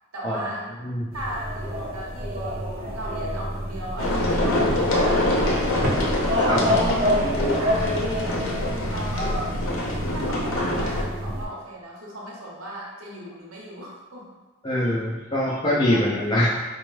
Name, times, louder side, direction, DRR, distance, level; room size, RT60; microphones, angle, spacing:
voice 1, 0.1-0.7 1.1-6.2 6.5-7.1 7.4-8.6 8.9-9.6 10.1-14.4 15.9-16.2, equal, 85° right, -3 dB, 0.8 m, -37 dB
sound 1, 1.1-11.5, equal, 45° right, 0.5 m, -27 dB
sound 2, 4.0-11.0, left 1 dB, 70° left, 0.6 m, -25 dB
voice 2, 6.4-6.7 14.6-16.5, left 1 dB, 20° left, -8 dB, 0.4 m, -23 dB
4.2 x 2.2 x 3.1 m, 1.2 s
head